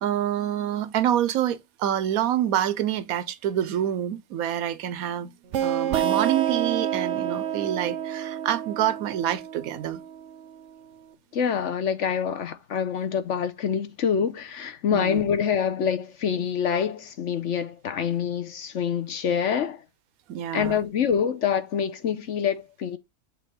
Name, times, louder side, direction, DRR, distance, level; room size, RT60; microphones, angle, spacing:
voice 1, 0.0-5.3 5.6-10.0 14.9-15.2 20.3-20.8, right 11 dB, 85° right, 1.1 m, -27 dB
sound 1, 5.5-10.9, right 10 dB, 65° right, 0.9 m, -29 dB
voice 2, 11.3-19.8 20.5-23.0, left 7 dB, 60° left, 1.1 m, -26 dB
7.6 x 3.2 x 5.3 m
omnidirectional pair, 1.5 m